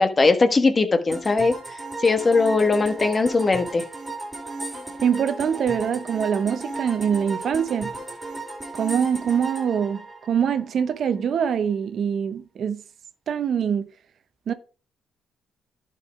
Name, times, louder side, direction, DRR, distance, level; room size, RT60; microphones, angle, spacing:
voice 1, 0.0-1.5 2.0-3.8, left 3 dB, 30° left, 1.3 m, -19 dB
sound 1, 1.1-10.8, right 2 dB, 20° right, 3.5 m, -35 dB
voice 2, 5.0-7.9 8.8-10.0 10.3-12.8 13.3-13.9 14.5-14.6, right 7 dB, 60° right, 0.7 m, -24 dB
11.5 x 4.7 x 4.7 m
cardioid pair, 90°, 0 cm